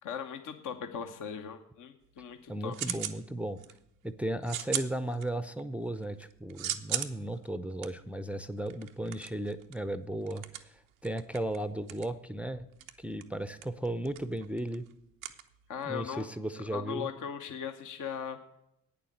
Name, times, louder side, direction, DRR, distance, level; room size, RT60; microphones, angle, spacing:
voice 1, 0.0-3.0 15.7-16.3 16.6-18.4, left 7 dB, 50° left, 6 dB, 1.0 m, -39 dB
sound 1, 2.0-3.2 3.6-4.0 4.4-5.6 6.0-16.0, right 12 dB, 85° right, 0.7 m, -39 dB
voice 2, 2.5-3.6 4.0-12.7 13.0-14.9 15.8-17.1, right 1 dB, 5° right, 10 dB, 0.6 m, -35 dB
9.1 x 6.9 x 7.9 m, 0.79 s
figure-of-eight pair, 45°, 39 cm